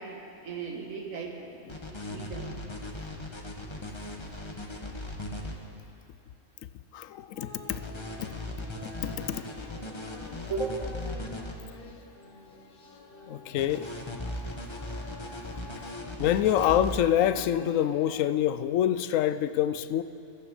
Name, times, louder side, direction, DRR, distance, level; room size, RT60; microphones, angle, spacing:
voice 1, 0.0-1.6 2.1-2.6 10.5-10.9, right 4 dB, 80° right, 2 dB, 2.0 m, -36 dB
sound 1, 1.7-5.5 7.7-11.5 13.6-17.0, left 1 dB, 20° left, 1.1 m, -38 dB
voice 2, 6.9-7.8 9.0-9.4 13.3-13.9 16.2-20.0, left 11 dB, 75° left, 13 dB, 0.9 m, -26 dB
sound 2, 7.4-18.3, left 4 dB, 45° left, 1.1 m, -47 dB
15.0 x 14.0 x 5.4 m, 2.6 s
omnidirectional pair, 1.4 m